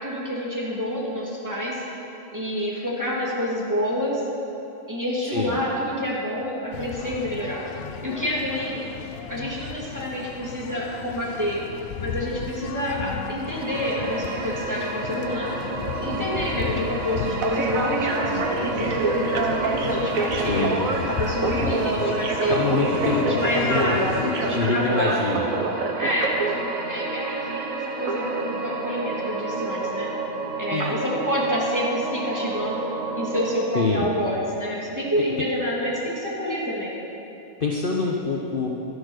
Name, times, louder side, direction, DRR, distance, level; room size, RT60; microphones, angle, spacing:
voice 1, 0.0-1.8 2.3-4.2 4.9-7.6 8.0-8.8 9.3-11.6 12.0-15.6 16.0-20.7 21.1-22.6 23.1-24.0 24.4-25.2 26.0-26.6 26.9-30.1 30.6-32.8 33.1-37.0, equal, 10° right, -6 dB, 2.7 m, -28 dB
voice 2, 5.2-5.6 20.4-20.8 22.5-23.4 23.7-24.1 24.5-25.4 30.7-31.0 33.7-34.0 37.6-38.7, left 4 dB, 40° left, -1 dB, 1.0 m, -25 dB
sound 1, 6.7-24.7, left 8 dB, 65° left, 0.6 m, -34 dB
sound 2, 13.6-33.6, right 3 dB, 65° right, 1.5 m, -28 dB
12.0 x 11.0 x 6.6 m, 3.0 s
omnidirectional pair, 1.6 m